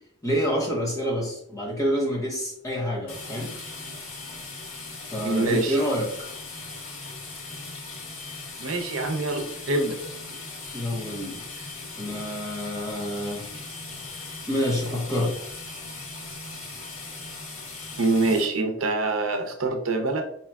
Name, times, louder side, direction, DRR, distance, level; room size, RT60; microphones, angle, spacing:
voice 1, 0.2-3.5 5.1-6.3 10.7-11.4 12.0-13.5 14.5-15.5, equal, 15° left, -3 dB, 1.1 m, -28 dB
sound 1, 3.1-18.5, left 3 dB, 85° left, 1.2 m, -39 dB
voice 2, 5.2-5.8 8.6-10.0 18.0-20.2, right 2 dB, 90° right, 5 dB, 0.7 m, -25 dB
4.5 x 2.9 x 2.3 m, 0.70 s
head